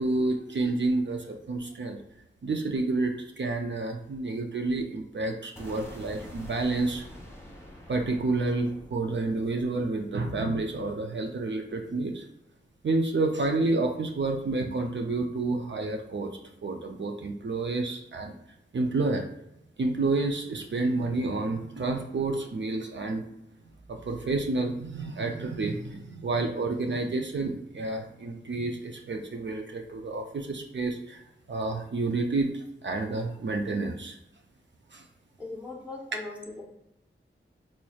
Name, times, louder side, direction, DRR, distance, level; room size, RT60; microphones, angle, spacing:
voice 1, 0.0-2.0 2.4-7.0 7.9-12.2 12.8-16.3 16.6-18.3 18.7-19.3 19.8-23.2 23.9-31.2 31.5-34.2 34.9-35.0, right 3 dB, 60° right, 3 dB, 0.4 m, -29 dB
sound 1, 5.6-11.6, left 1 dB, 10° left, 1.1 m, -47 dB
voice 2, 35.4-36.6, left 2 dB, 5° right, -3 dB, 0.7 m, -39 dB
4.2 x 3.0 x 2.3 m, 0.81 s
wide cardioid pair, 50°, 21 cm